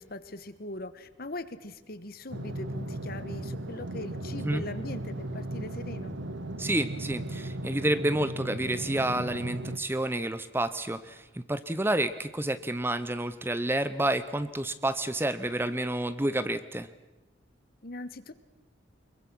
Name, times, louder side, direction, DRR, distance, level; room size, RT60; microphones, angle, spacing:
voice 1, 0.0-6.2 17.8-18.3, left 2 dB, 50° left, 13 dB, 1.2 m, -40 dB
sound 1, 2.3-9.8, right 1 dB, 80° right, 1.2 m, -36 dB
voice 2, 6.6-16.9, right 1 dB, 10° right, 13 dB, 0.7 m, -29 dB
24.5 x 22.5 x 6.2 m, 1.1 s
head